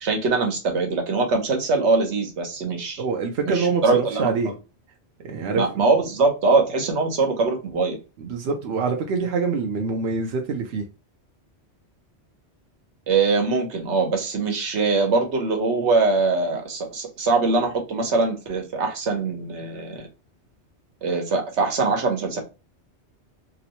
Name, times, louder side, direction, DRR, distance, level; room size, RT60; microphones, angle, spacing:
voice 1, 0.0-3.0 3.4-4.5 5.5-8.0 13.1-20.1 21.0-22.4, right 3 dB, 85° right, 3 dB, 1.2 m, -22 dB
voice 2, 3.0-4.5 5.2-5.8 8.2-10.8, right 4 dB, 70° right, 3 dB, 0.8 m, -25 dB
3.8 x 2.1 x 2.8 m, 0.30 s
omnidirectional pair, 1.1 m